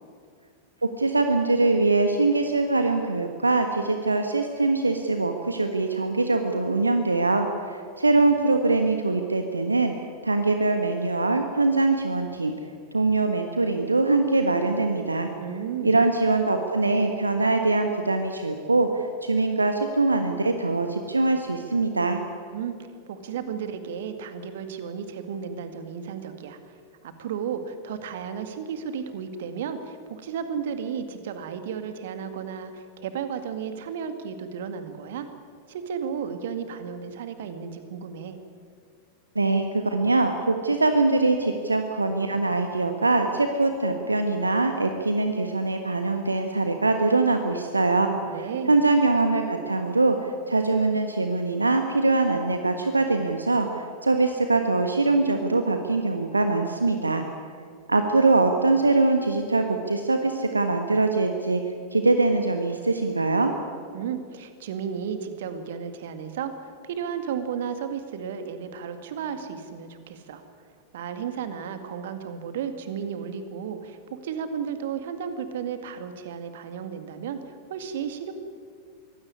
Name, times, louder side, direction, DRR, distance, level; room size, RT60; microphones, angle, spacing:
voice 1, 0.8-9.9 10.2-12.5 12.9-15.3 15.8-22.2 39.3-48.1 48.7-57.2 57.9-61.6 61.9-63.5, right 3 dB, 80° right, 6 dB, 1.4 m, -23 dB
voice 2, 15.4-16.0 22.5-22.7 23.1-26.8 27.0-35.3 35.7-38.4 48.0-48.8 63.9-70.4 70.9-78.3, right 7 dB, 55° right, 9 dB, 2.1 m, -33 dB
23.0 x 16.5 x 9.7 m, 2.1 s
figure-of-eight pair, 90°, 0 cm